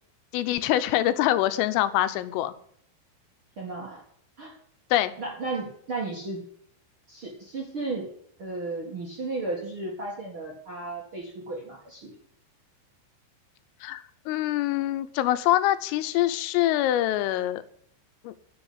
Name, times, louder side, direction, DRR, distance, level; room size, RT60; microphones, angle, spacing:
voice 1, 0.3-2.5 4.9-5.1 13.8-17.6 18.3-18.4, left 13 dB, 85° left, 12 dB, 3.4 m, -24 dB
voice 2, 3.6-4.0 4.4-4.5 5.2-6.4 7.1-8.1 8.4-12.2, right 3 dB, 55° right, -2 dB, 1.5 m, -34 dB
10.5 x 7.0 x 9.4 m, 0.64 s
omnidirectional pair, 5.7 m